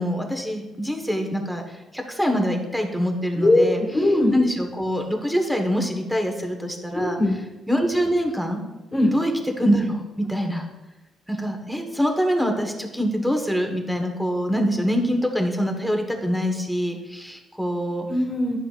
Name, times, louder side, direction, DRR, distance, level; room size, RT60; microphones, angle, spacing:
voice 1, 0.0-3.8 4.3-7.2 7.7-8.6 9.1-10.6 11.3-18.1, equal, ahead, 3 dB, 1.3 m, -24 dB
voice 2, 3.4-4.3 6.9-7.4 8.9-9.1 18.1-18.6, left 1 dB, 20° left, 0 dB, 2.0 m, -20 dB
11.0 x 5.8 x 2.5 m, 1.1 s
cardioid pair, 90°, 0 cm